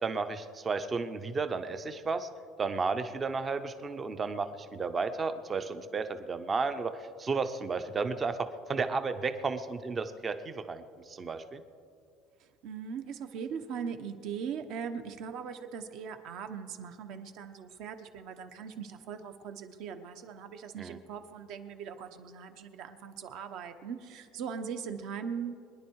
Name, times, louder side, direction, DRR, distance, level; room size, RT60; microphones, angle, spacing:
voice 1, 0.0-2.3 2.6-11.6 20.8-21.0, right 4 dB, 20° right, 10 dB, 0.6 m, -33 dB
voice 2, 12.6-25.6, right 7 dB, 55° right, 8 dB, 1.1 m, -40 dB
23.5 x 10.5 x 4.7 m, 2.4 s
cardioid pair, 170°, 0 cm